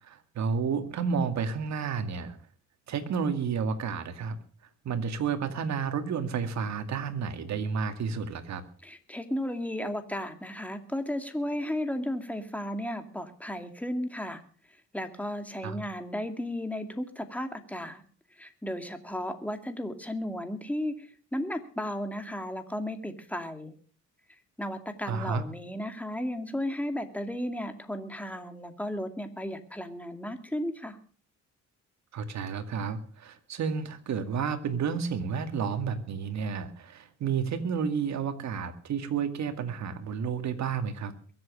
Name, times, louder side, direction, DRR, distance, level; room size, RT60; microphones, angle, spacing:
voice 1, 0.0-2.4 2.9-4.4 4.8-8.6 15.6-15.8 25.1-25.4 32.1-41.1, right 6 dB, 65° right, 8 dB, 2.2 m, -31 dB
voice 2, 8.8-14.4 14.9-18.0 18.4-23.7 24.6-31.0, left 1 dB, 5° left, 7 dB, 2.4 m, -34 dB
22.5 x 7.9 x 6.4 m, 0.42 s
cardioid pair, 90°, 30 cm